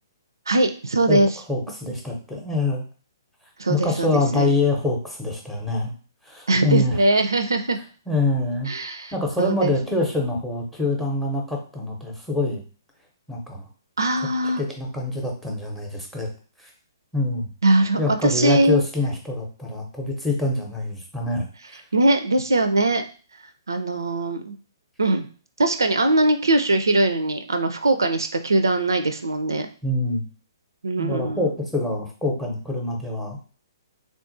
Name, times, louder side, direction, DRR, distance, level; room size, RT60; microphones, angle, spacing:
voice 1, 0.5-1.3 3.6-4.5 6.5-7.8 8.7-9.7 14.0-14.6 17.6-18.8 21.9-23.0 23.7-24.6 25.0-25.3 25.6-29.7 30.8-31.4, right 2 dB, 75° right, 8 dB, 0.4 m, -21 dB
voice 2, 1.5-2.8 3.7-5.9 6.2-7.0 8.1-8.7 9.1-12.6 13.3-13.7 14.6-16.3 16.6-16.7 17.1-17.5 18.0-21.8 29.8-30.2 31.0-33.4, left 2 dB, 5° left, 1 dB, 0.7 m, -25 dB
3.5 x 2.4 x 2.6 m, 0.38 s
figure-of-eight pair, 125°, 2 cm